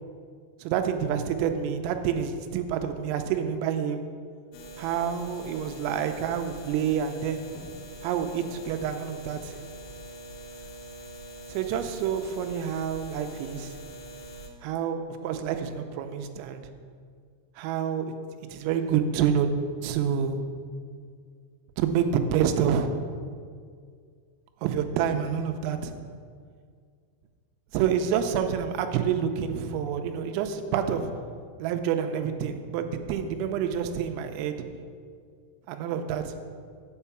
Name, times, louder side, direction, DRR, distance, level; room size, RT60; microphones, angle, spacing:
voice 1, 0.6-4.0 4.8-7.4 8.0-9.6 11.5-13.7 14.6-16.6 17.6-18.1 18.5-19.5 19.8-20.4 21.8-22.9 24.6-25.9 27.7-31.1 31.6-34.6 35.7-36.3, right 8 dB, 85° right, 7 dB, 3.3 m, -28 dB
sound 1, 4.5-14.5, right 1 dB, 85° left, 3.5 m, -43 dB
7.5 x 5.5 x 7.0 m, 2.1 s
omnidirectional pair, 5.8 m